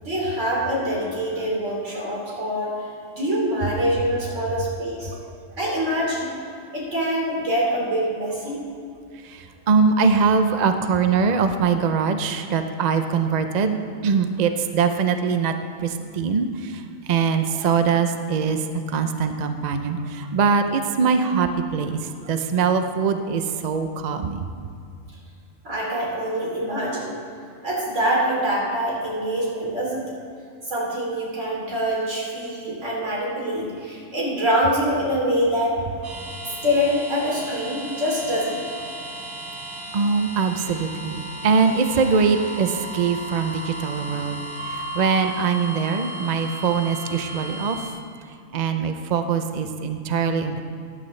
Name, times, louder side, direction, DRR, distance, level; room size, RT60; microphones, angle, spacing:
voice 1, 0.0-5.1 5.6-6.3 6.7-8.6 25.6-27.1 27.6-30.2 30.6-35.7 36.6-38.6, equal, 65° right, -5 dB, 3.4 m, -25 dB
voice 2, 9.2-15.5 15.8-16.8 17.1-18.6 18.9-24.4 39.9-47.8 48.5-50.6, right 5 dB, 50° right, 7 dB, 0.5 m, -22 dB
sound 1, 36.0-47.9, right 1 dB, 85° right, 2.0 m, -35 dB
15.0 x 10.5 x 3.2 m, 2.4 s
omnidirectional pair, 1.4 m